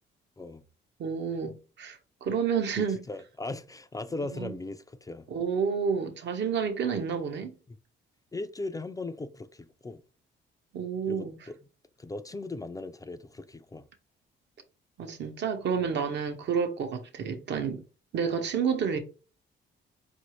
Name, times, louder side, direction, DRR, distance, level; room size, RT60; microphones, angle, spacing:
voice 1, 1.0-3.0 4.3-4.5 5.3-7.5 10.7-11.3 15.0-17.8 18.1-19.0, right 6 dB, 65° right, 0.9 m, -30 dB
voice 2, 2.8-5.3 7.7-7.8 8.3-10.0 11.1-11.6 12.0-13.9, left 2 dB, 15° left, 0.4 m, -38 dB
4.7 x 2.6 x 3.0 m
cardioid pair, 90°, 20 cm